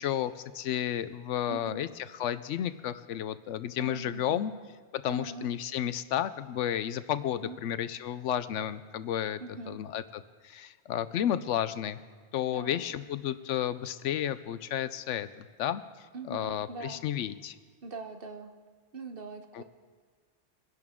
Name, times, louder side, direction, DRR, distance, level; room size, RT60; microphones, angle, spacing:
voice 1, 0.0-1.9 2.2-4.5 4.9-9.4 9.7-12.0 12.3-15.8 16.3-17.6 19.5-19.6, left 10 dB, 80° left, 13 dB, 0.9 m, -32 dB
voice 2, 1.5-1.8 3.8-4.5 5.1-5.5 7.4-7.6 9.4-9.8 12.5-12.8 16.1-17.0 17.8-18.5 18.9-19.6, right 3 dB, 50° right, 6 dB, 1.1 m, -42 dB
22.5 x 10.5 x 3.7 m, 1.5 s
omnidirectional pair, 1.2 m